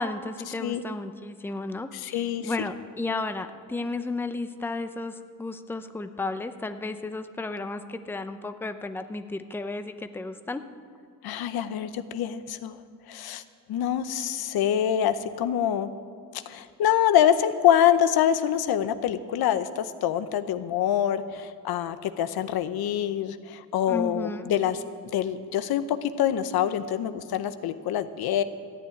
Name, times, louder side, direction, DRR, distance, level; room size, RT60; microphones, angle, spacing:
voice 1, 0.0-10.6 23.9-24.5, left 3 dB, 5° left, 9 dB, 0.5 m, -33 dB
voice 2, 1.9-2.5 11.2-12.8 13.1-13.4 13.7-15.9 16.3-24.8 25.1-28.4, left 10 dB, 90° left, 11 dB, 0.8 m, -25 dB
13.5 x 9.0 x 9.5 m, 2.3 s
cardioid pair, 135°, 36 cm